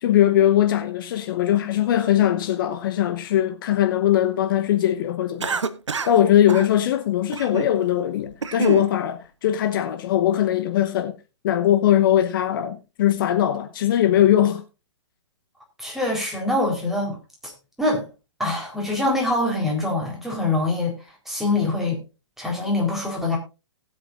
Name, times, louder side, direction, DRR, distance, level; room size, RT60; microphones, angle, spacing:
voice 1, 0.0-5.6 6.1-11.1 11.4-14.6, left 11 dB, 45° left, 1.0 m, -20 dB
Cough, 5.4-6.2 6.5-6.7 7.3-7.7 8.2-8.9, right 5 dB, 75° right, 0.9 m, -27 dB
voice 2, 15.8-17.2 17.4-17.5 17.8-18.1 18.4-21.0 21.3-22.0 22.4-23.4, left 2 dB, ahead, 4.0 m, -24 dB
18.5 x 8.4 x 2.5 m
figure-of-eight pair, 120°, 15 cm